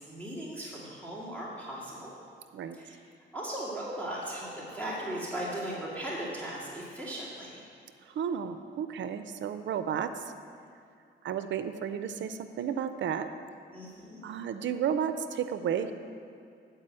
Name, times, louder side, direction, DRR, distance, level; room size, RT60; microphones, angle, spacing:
voice 1, 0.0-2.1 2.7-3.0 3.3-7.6 13.7-14.2, right 1 dB, 10° left, -8 dB, 2.3 m, -37 dB
voice 2, 8.0-10.3 11.2-13.3 14.2-15.9, right 8 dB, 70° right, 10 dB, 0.5 m, -32 dB
9.8 x 4.8 x 7.5 m, 2.4 s
cardioid pair, 85°, 20 cm